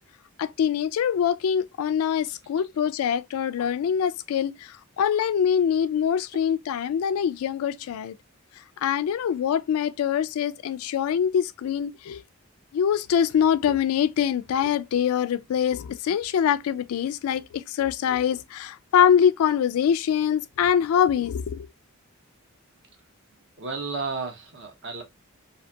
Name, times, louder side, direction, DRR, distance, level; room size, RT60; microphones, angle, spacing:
voice 1, 0.4-8.2 8.6-12.2 12.7-21.7, left 8 dB, 85° left, 0.3 m, -24 dB
voice 2, 23.6-25.0, right 3 dB, 55° right, 0.7 m, -32 dB
2.7 x 2.5 x 2.2 m
head